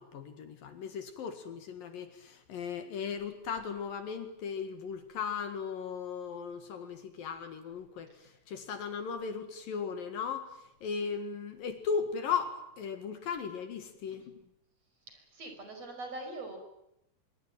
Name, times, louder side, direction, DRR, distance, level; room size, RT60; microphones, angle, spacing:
voice 1, 0.0-14.2, left 6 dB, 65° left, 8 dB, 3.4 m, -37 dB
voice 2, 15.1-16.6, right 2 dB, 40° right, 5 dB, 6.4 m, -43 dB
25.5 x 23.0 x 9.1 m, 0.81 s
omnidirectional pair, 4.6 m